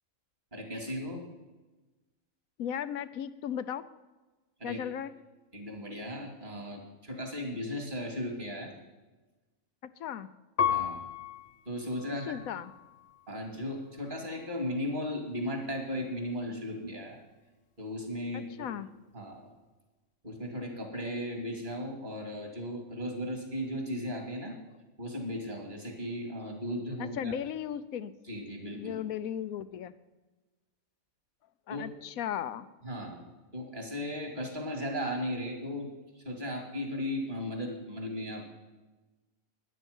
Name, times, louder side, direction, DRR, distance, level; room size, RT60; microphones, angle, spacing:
voice 1, 0.5-1.2 4.6-4.8 5.5-8.7 10.7-11.0 11.7-12.4 13.3-17.2 17.8-18.7 19.1-19.4 20.2-24.6 25.0-27.3 28.3-28.9 31.7-31.9 32.8-33.2 33.5-35.9 36.2-38.5, equal, 35° right, 2 dB, 2.9 m, -36 dB
voice 2, 2.6-3.9 4.6-5.1 10.0-10.3 12.2-12.7 18.3-18.9 27.0-28.1 28.7-29.9 31.7-32.7, left 9 dB, 80° left, 14 dB, 1.2 m, -36 dB
Piano, 10.6-13.3 14.0-14.7, left 8 dB, 60° left, 1.2 m, -35 dB
13.0 x 10.5 x 5.4 m, 1.2 s
omnidirectional pair, 1.4 m